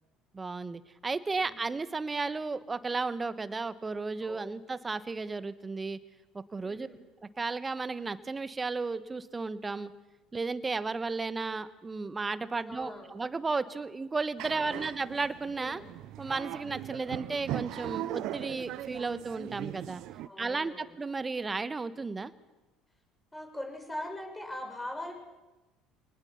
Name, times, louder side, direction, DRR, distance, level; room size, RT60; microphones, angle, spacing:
voice 1, 0.3-6.0 6.3-6.9 7.4-9.9 10.3-15.8 16.2-20.0 20.4-22.3, right 4 dB, 25° right, 14 dB, 1.3 m, -34 dB
voice 2, 4.2-4.5 6.6-7.0 12.6-13.2 14.5-15.0 15.5-15.9 20.2-20.9 23.3-25.1, left 1 dB, 15° left, 3 dB, 6.6 m, -42 dB
sound 1, 14.4-20.3, right 14 dB, 65° right, 0.7 m, -39 dB
26.0 x 19.5 x 7.3 m, 1.1 s
hypercardioid pair, 65°, 0 cm